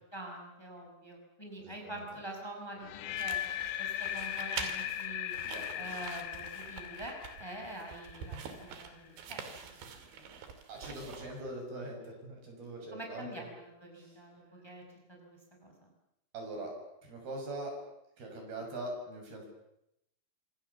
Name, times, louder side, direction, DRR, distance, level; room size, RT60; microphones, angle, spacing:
voice 1, 0.0-3.4 3.8-5.3 5.8-10.4 12.9-15.9, right 1 dB, 5° left, 1 dB, 6.0 m, -46 dB
voice 2, 1.6-2.0 5.4-5.9 10.7-13.4 14.0-14.1 16.3-16.7 17.0-17.8 18.2-19.5, right 1 dB, 60° right, 2 dB, 8.4 m, -42 dB
sound 1, 2.8-8.8, left 12 dB, 85° left, 3.4 m, -38 dB
sound 2, 3.1-11.5, right 6 dB, 90° right, 4.9 m, -46 dB
27.0 x 26.0 x 7.2 m, 0.82 s
omnidirectional pair, 4.9 m